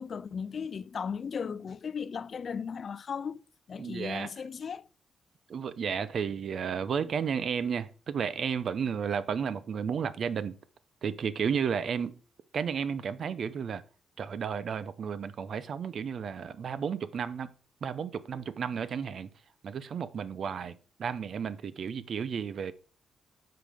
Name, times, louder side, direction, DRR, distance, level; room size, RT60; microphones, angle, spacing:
voice 1, 0.0-3.4 3.7-4.9, left 6 dB, 50° left, 0.3 m, -36 dB
voice 2, 3.8-4.3 5.5-10.6 11.0-12.2 12.5-13.8 14.2-17.5 17.8-19.3 19.6-22.7, right 7 dB, 60° right, 0.6 m, -33 dB
9.9 x 5.8 x 3.5 m
cardioid pair, 95°, 0 cm